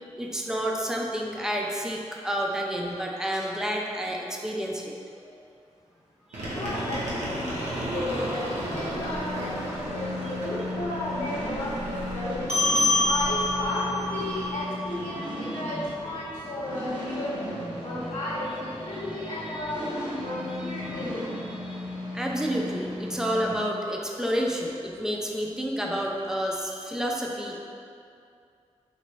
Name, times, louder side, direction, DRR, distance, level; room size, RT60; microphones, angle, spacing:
voice 1, 0.2-5.0 5.2-5.4 6.3-7.0 15.2-15.3 18.9-19.3 20.5-21.1 21.7-21.9 22.1-27.6, equal, 5° right, -1 dB, 0.5 m, -30 dB
sound 1, 6.3-14.6, equal, 75° right, 0.8 m, -35 dB
voice 2, 6.5-12.5 13.0-17.5 17.8-19.9 20.2-21.5, left 1 dB, 65° left, -8 dB, 0.7 m, -34 dB
sound 2, 6.9-23.6, left 1 dB, 40° right, 0.9 m, -36 dB
sound 3, 12.5-17.3, left 2 dB, 60° right, 1.3 m, -28 dB
4.0 x 3.0 x 2.3 m, 2.5 s
cardioid pair, 45°, 12 cm